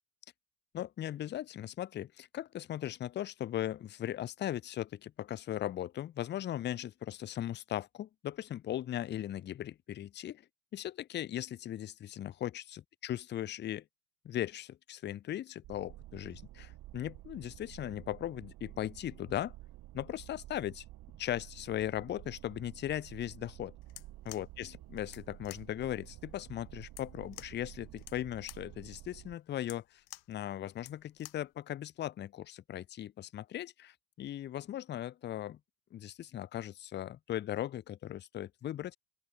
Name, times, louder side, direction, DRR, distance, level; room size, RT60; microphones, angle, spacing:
voice 1, 0.7-10.4 10.7-13.8 14.2-19.5 19.9-20.8 21.2-23.7 24.3-30.0 30.3-35.6 35.9-39.0, left 12 dB, 30° left, 0.4 m, -38 dB
sound 1, 15.6-29.3, right 16 dB, 65° right, 3.3 m, -51 dB
sound 2, 23.8-31.5, left 19 dB, 75° left, 3.9 m, -53 dB
open air
cardioid pair, 115°, 39 cm